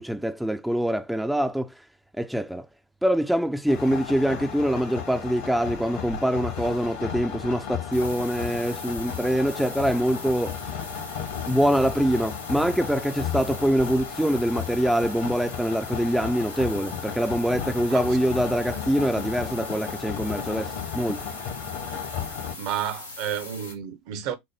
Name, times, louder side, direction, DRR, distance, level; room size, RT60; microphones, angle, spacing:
voice 1, 0.0-1.7 2.2-2.7 3.0-10.6 11.5-21.2, equal, ahead, 0.4 m, -24 dB
sound 1, 3.7-22.5, left 8 dB, 60° left, 1.1 m, -34 dB
sound 2, 7.9-23.7, left 2 dB, 85° left, 0.8 m, -41 dB
voice 2, 22.6-24.4, right 9 dB, 55° right, 0.7 m, -31 dB
6.0 x 2.0 x 3.3 m
figure-of-eight pair, 75°, 0 cm